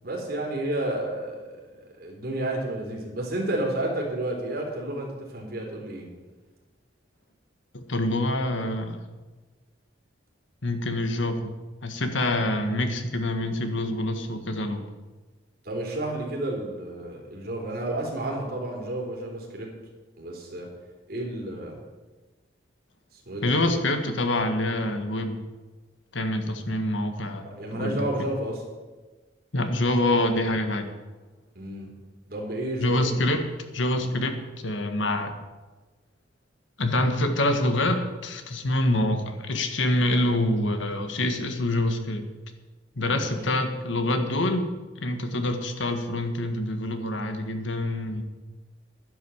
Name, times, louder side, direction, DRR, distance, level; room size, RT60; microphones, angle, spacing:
voice 1, 0.0-6.1 15.6-19.7 20.2-20.7 21.1-21.8 23.1-23.6 27.4-28.6 31.6-31.9 32.3-33.2 34.0-34.1 43.0-43.6, right 1 dB, 50° right, -1 dB, 3.8 m, -31 dB
voice 2, 7.7-9.0 10.6-11.5 11.8-14.9 23.4-25.4 26.1-28.1 29.5-30.9 32.8-34.4 34.6-35.3 36.8-42.2 42.9-48.2, left 1 dB, 80° left, 6 dB, 1.7 m, -26 dB
11.5 x 10.5 x 7.2 m, 1.2 s
head